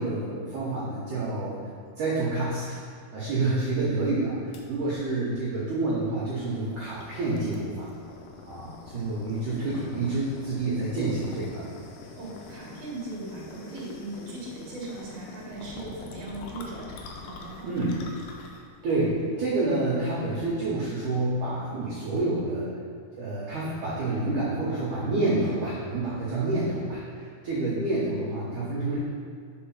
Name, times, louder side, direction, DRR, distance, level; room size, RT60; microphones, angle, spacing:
voice 1, 0.0-1.6 2.0-2.8 3.1-7.9 8.5-11.6 17.6-18.0 18.8-22.7 23.1-29.0, right 2 dB, 75° right, -6 dB, 1.8 m, -28 dB
sound 1, 4.5-20.8, left 3 dB, 90° left, 1.8 m, -46 dB
voice 2, 12.1-16.9 17.2-17.9, right 2 dB, 55° right, -5 dB, 1.3 m, -38 dB
5.0 x 4.7 x 5.8 m, 2.1 s
omnidirectional pair, 4.7 m